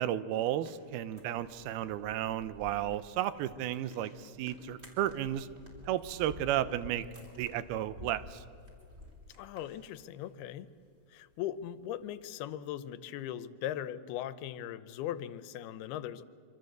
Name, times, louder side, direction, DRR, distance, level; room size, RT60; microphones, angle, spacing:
voice 1, 0.0-5.5 5.9-7.1 7.4-8.4, right 12 dB, 85° right, 14 dB, 2.8 m, -33 dB
sound 1, 0.6-12.3, left 2 dB, 15° right, 3.5 m, -53 dB
voice 2, 9.4-10.7 11.1-16.2, left 11 dB, 90° left, 15 dB, 2.8 m, -39 dB
25.5 x 25.5 x 8.0 m, 2.3 s
omnidirectional pair, 4.4 m